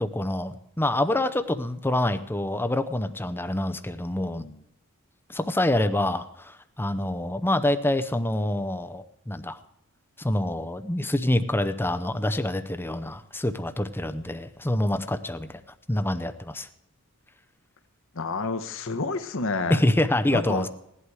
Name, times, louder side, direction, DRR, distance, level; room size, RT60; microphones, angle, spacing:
voice 1, 0.0-4.4 5.3-9.6 10.2-15.6 15.9-16.7 19.7-20.7, left 1 dB, 10° left, 9 dB, 0.7 m, -26 dB
voice 2, 18.1-19.8 20.3-20.7, left 3 dB, 65° left, 9 dB, 1.1 m, -29 dB
16.0 x 11.5 x 4.8 m, 0.81 s
head